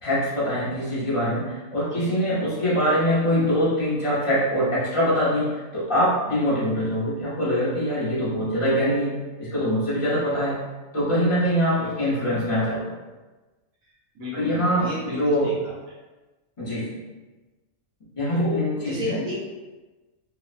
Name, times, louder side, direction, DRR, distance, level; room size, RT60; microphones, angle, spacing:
voice 1, 0.0-9.1 9.4-10.6 10.9-12.9 14.3-15.5 16.6-17.0 18.2-19.2, equal, 35° left, -8 dB, 0.5 m, -23 dB
voice 2, 14.1-16.0 18.3-19.3, left 1 dB, 75° right, -7 dB, 1.2 m, -33 dB
2.8 x 2.0 x 2.4 m, 1.2 s
omnidirectional pair, 1.5 m